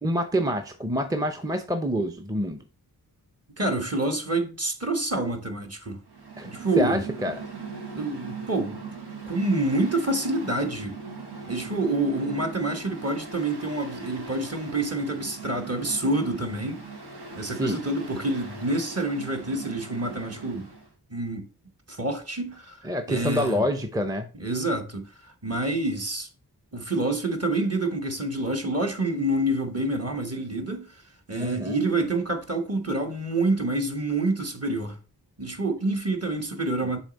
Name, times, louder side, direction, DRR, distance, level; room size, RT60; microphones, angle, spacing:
voice 1, 0.0-2.6 6.4-6.5 6.8-7.4 17.6-17.8 22.8-24.3 31.4-31.8, equal, 10° right, 0.6 m, -26 dB
voice 2, 3.6-6.0 6.4-7.0 7.9-8.8 9.2-11.0 11.5-16.8 17.3-20.7 21.1-21.5 21.9-22.8 23.1-23.6 24.3-26.3 26.7-31.0 31.3-35.0 35.4-37.0, right 2 dB, 35° right, 1.2 m, -27 dB
Mechanical fan, 6.0-20.9, right 4 dB, 80° right, 1.4 m, -40 dB
7.0 x 3.3 x 4.0 m
wide cardioid pair, 50°, 40 cm